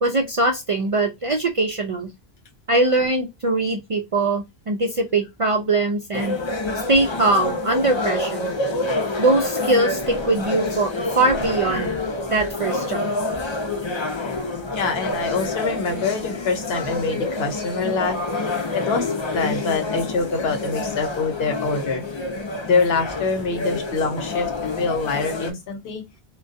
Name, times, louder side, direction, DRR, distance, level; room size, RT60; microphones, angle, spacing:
voice 1, 0.0-2.1 2.7-6.4 6.9-8.5 9.2-10.9 11.2-11.9 12.3-13.1, right 2 dB, 55° right, 0.3 m, -21 dB
sound 1, 6.1-25.5, left 2 dB, 40° left, 0.5 m, -27 dB
voice 2, 14.7-18.5 18.7-22.0 22.7-24.5 24.8-26.0, left 4 dB, 80° left, 1.0 m, -25 dB
2.2 x 2.2 x 2.5 m
omnidirectional pair, 1.0 m